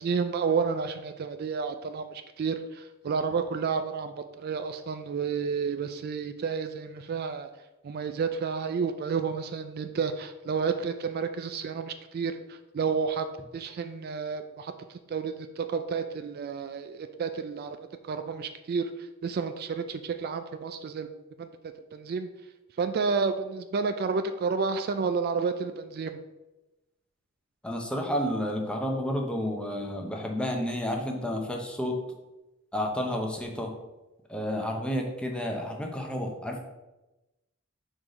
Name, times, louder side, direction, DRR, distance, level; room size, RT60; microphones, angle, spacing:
voice 1, 0.0-7.5 7.8-13.3 13.5-17.8 18.1-18.9 19.2-21.1 21.4-21.5 21.9-22.3 22.8-26.2, right 5 dB, 50° right, 9 dB, 0.3 m, -30 dB
voice 2, 27.6-32.0 32.7-33.7 34.3-36.6, equal, 5° left, 1 dB, 0.8 m, -31 dB
4.8 x 3.8 x 5.2 m, 1.0 s
head